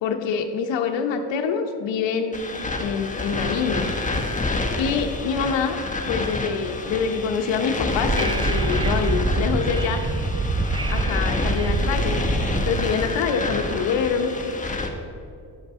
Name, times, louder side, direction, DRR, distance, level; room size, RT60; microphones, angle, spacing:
voice 1, 0.0-2.4 2.8-3.9 4.8-5.8 6.1-10.0 10.9-12.2 12.6-14.3, left 6 dB, 80° left, 5 dB, 0.9 m, -25 dB
sound 1, 2.3-14.9, left 2 dB, 15° left, 1.2 m, -28 dB
Wind / Subway metro underground, 7.9-12.9, right 2 dB, 10° right, 0.4 m, -25 dB
9.7 x 5.4 x 6.0 m, 2.4 s
cardioid pair, 70°, 44 cm